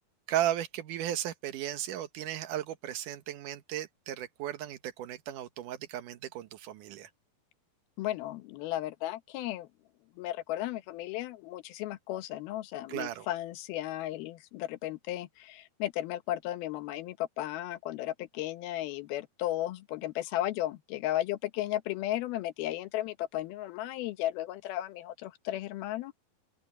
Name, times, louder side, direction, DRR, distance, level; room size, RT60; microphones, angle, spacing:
voice 1, 0.3-7.1 12.9-13.3, right 12 dB, 65° right, 2.6 m, -35 dB
voice 2, 8.0-9.7 10.2-26.1, left 14 dB, 90° left, 2.9 m, -35 dB
open air
omnidirectional pair, 4.2 m